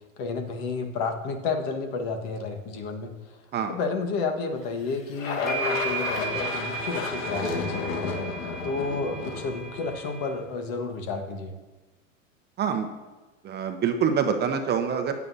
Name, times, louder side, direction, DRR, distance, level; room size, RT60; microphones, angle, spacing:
voice 1, 0.2-3.1 3.7-8.3 8.6-11.5, left 4 dB, 50° left, 4 dB, 1.6 m, -31 dB
sound 1, 4.9-5.0 5.5-10.3, right 4 dB, 25° left, 3.7 m, -34 dB
sound 2, 5.2-10.5, left 4 dB, 80° left, 1.6 m, -33 dB
voice 2, 13.4-15.1, right 7 dB, 25° right, 6 dB, 0.9 m, -25 dB
15.0 x 9.5 x 2.8 m, 1.2 s
hypercardioid pair, 115°, 39 cm